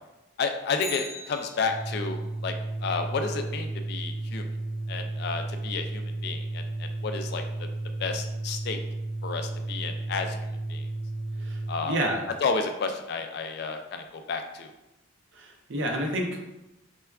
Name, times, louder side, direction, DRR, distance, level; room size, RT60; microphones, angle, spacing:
voice 1, 0.4-2.2 2.4-2.5 2.8-4.5 4.9-7.7 8.0-8.8 9.2-10.4 10.7-10.8 11.7-12.0 12.4-14.7, left 4 dB, 50° left, 6 dB, 0.3 m, -31 dB
Bicycle, 0.7-2.1 10.4-10.5, left 2 dB, 20° left, 0.6 m, -40 dB
Organ, 1.5-11.9, right 2 dB, 10° right, 0.8 m, -33 dB
voice 2, 11.9-12.2 15.3-16.4, right 1 dB, 65° right, 1 dB, 0.6 m, -29 dB
4.3 x 2.2 x 2.3 m, 0.94 s
head